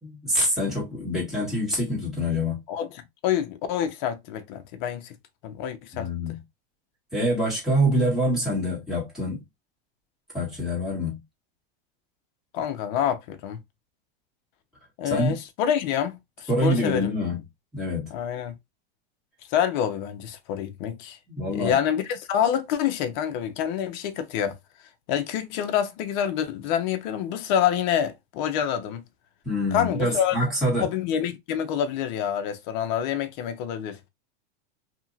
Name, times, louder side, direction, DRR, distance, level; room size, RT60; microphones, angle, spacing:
voice 1, 0.0-2.6 5.9-6.4 7.1-9.4 10.3-11.2 15.0-15.4 16.5-17.4 17.7-18.1 21.3-21.8 29.4-30.9, equal, ahead, 1.7 m, -25 dB
voice 2, 2.7-5.1 5.4-6.1 12.5-13.6 15.0-17.1 18.1-18.5 19.5-21.2 21.5-24.6 25.1-29.0 29.7-30.4 30.8-34.1, left 9 dB, 50° left, 0.6 m, -27 dB
2.8 x 2.7 x 2.5 m
supercardioid pair, 150°, 29 cm